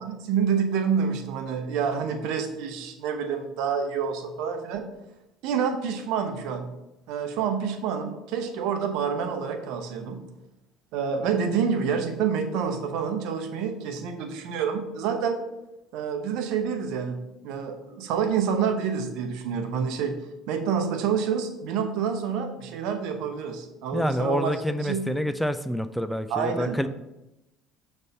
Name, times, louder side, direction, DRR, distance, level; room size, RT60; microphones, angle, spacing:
voice 1, 0.0-4.8 5.4-6.7 7.1-10.2 10.9-15.4 15.9-17.2 17.4-25.1 26.3-26.9, right 6 dB, 65° right, 6 dB, 0.8 m, -28 dB
voice 2, 23.9-26.9, equal, 5° left, 12 dB, 0.4 m, -27 dB
6.5 x 3.5 x 5.4 m, 0.94 s
hypercardioid pair, 65°, 0 cm